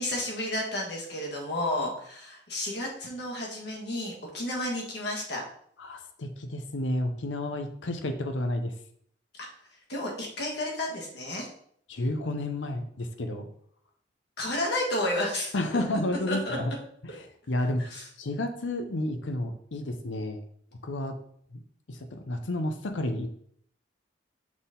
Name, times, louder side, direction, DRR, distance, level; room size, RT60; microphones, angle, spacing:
voice 1, 0.0-5.4 9.9-11.5 14.4-15.5 16.3-16.6 17.8-18.0, left 1 dB, 65° left, -1 dB, 1.7 m, -31 dB
voice 2, 5.8-8.7 11.9-13.5 15.5-16.7 17.1-17.8 18.2-20.4 20.8-21.2 21.5-21.6 21.9-23.3, left 1 dB, 85° left, 6 dB, 0.7 m, -31 dB
6.1 x 4.1 x 3.8 m, 0.65 s
head